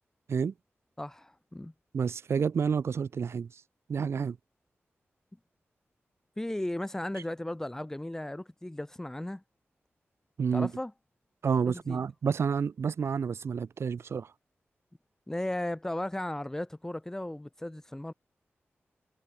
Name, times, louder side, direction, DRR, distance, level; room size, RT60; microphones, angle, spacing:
voice 1, 1.0-1.7 6.4-9.4 10.5-10.9 11.6-12.0 15.3-18.1, left 1 dB, 10° left, 7.2 m, -35 dB
voice 2, 1.9-3.5 3.9-4.4 10.4-10.7 11.4-14.3, right 6 dB, 80° right, 3.4 m, -29 dB
wide cardioid pair, 145°, 4 cm